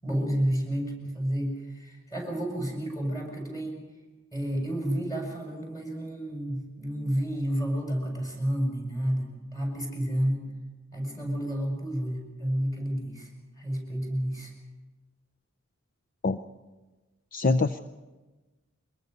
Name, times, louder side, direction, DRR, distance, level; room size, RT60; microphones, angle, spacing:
voice 1, 0.0-3.8 4.3-10.4 10.9-13.3 13.6-14.5, equal, 15° left, 1 dB, 6.7 m, -30 dB
voice 2, 17.3-17.8, left 3 dB, 45° left, 11 dB, 0.6 m, -24 dB
23.5 x 21.5 x 5.5 m, 1.2 s
head